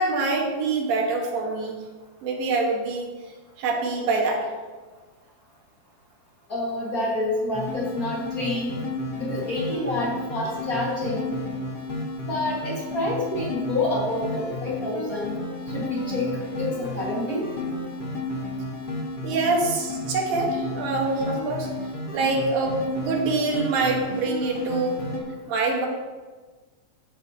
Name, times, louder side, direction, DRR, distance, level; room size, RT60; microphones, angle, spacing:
voice 1, 0.0-1.8 2.2-3.1 3.6-4.5 19.2-21.7 22.1-25.0 25.5-25.9, right 3 dB, 80° right, 0 dB, 3.1 m, -25 dB
voice 2, 6.5-8.7 9.2-11.4 12.2-15.4 15.7-16.3 16.6-17.5, left 2 dB, 40° left, -4 dB, 1.3 m, -28 dB
sound 1, 7.5-25.2, left 2 dB, 65° left, 1.0 m, -32 dB
13.5 x 8.1 x 2.8 m, 1.3 s
omnidirectional pair, 4.1 m